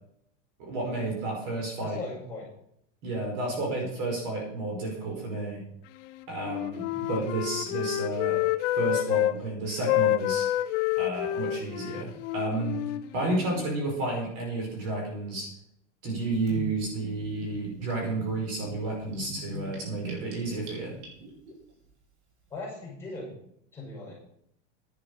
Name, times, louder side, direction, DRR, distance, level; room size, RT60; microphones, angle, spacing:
voice 1, 0.6-2.0 3.0-5.6 6.3-8.4 8.8-10.5 11.0-12.8 13.1-15.5 16.0-20.9, right 2 dB, 40° right, -1 dB, 5.2 m, -31 dB
voice 2, 1.8-2.5 22.5-23.4 23.7-24.1, left 2 dB, 5° left, -5 dB, 5.9 m, -38 dB
Wind instrument woodwind instrument, 6.4-9.3 9.8-13.7, left 14 dB, 75° left, 1.1 m, -28 dB
Gurgling / Bathtub (filling or washing), 16.5-21.5, right 1 dB, 65° right, 5.5 m, -41 dB
11.0 x 8.9 x 6.6 m, 0.71 s
supercardioid pair, 180°, 36 cm